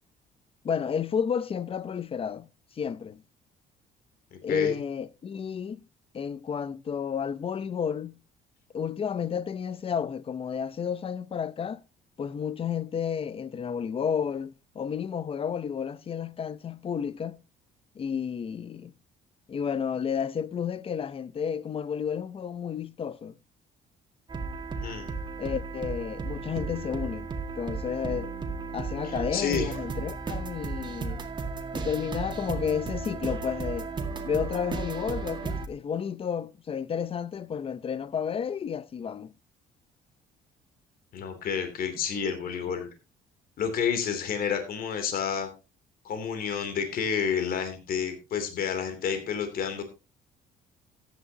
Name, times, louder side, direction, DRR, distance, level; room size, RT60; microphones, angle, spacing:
voice 1, 0.6-2.5 2.7-3.2 4.4-5.9 6.1-8.2 8.7-11.8 12.2-17.4 18.0-18.9 19.5-23.4 25.4-27.3 27.6-28.3 28.7-31.2 31.7-33.9 34.2-39.3, left 7 dB, 35° left, 0.7 m, -31 dB
voice 2, 4.3-4.7 24.8-25.1 29.0-29.7 41.1-42.9 43.6-45.5 46.0-49.8, left 7 dB, 60° left, 3.0 m, -30 dB
sound 1, 24.3-35.7, right 4 dB, 25° right, 2.0 m, -34 dB
14.5 x 10.5 x 2.9 m
cardioid pair, 110°, 17 cm